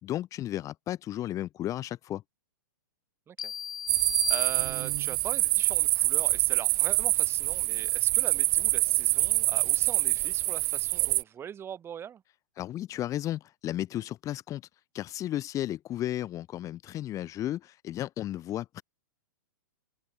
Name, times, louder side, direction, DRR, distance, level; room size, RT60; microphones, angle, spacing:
voice 1, 0.0-2.2 12.6-14.6 14.9-18.8, left 13 dB, 30° left, 3.4 m, -34 dB
sound 1, 3.4-5.2, left 9 dB, 70° left, 4.5 m, -37 dB
sound 2, 3.9-11.2, right 22 dB, 45° right, 0.9 m, -26 dB
voice 2, 4.3-12.2, right 8 dB, 20° right, 3.8 m, -41 dB
open air
hypercardioid pair, 110°, 11 cm